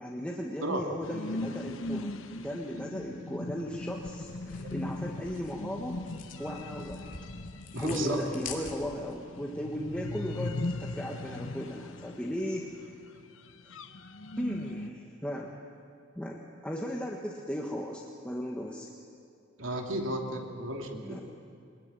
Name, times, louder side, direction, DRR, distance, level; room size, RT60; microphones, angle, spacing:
voice 1, 0.0-6.0 6.4-7.1 7.8-12.7 13.6-13.7 14.4-15.6 16.2-18.9 21.0-21.2, equal, 5° left, -2 dB, 1.5 m, -36 dB
sound 1, 1.0-14.9, left 2 dB, 75° left, 1.0 m, -39 dB
sound 2, 3.9-9.1, left 5 dB, 40° left, 3.2 m, -46 dB
voice 2, 7.7-8.2 19.6-21.2, right 1 dB, 80° right, 2 dB, 2.8 m, -33 dB
23.5 x 20.5 x 9.6 m, 2.5 s
head